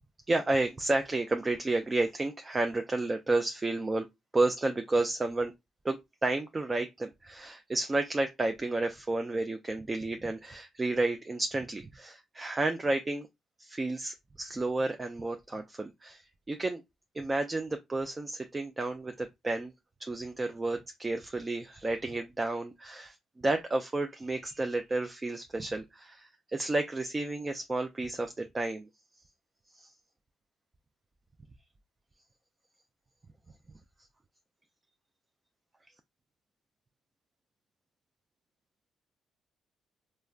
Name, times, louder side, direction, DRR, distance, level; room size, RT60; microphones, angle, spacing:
voice 1, 0.3-4.1 4.3-5.5 5.8-13.3 13.6-16.8 17.1-19.7 20.0-28.9 29.7-29.9, right 2 dB, 25° right, 0.3 m, -31 dB
3.2 x 2.1 x 2.3 m
cardioid pair, 90°, 0 cm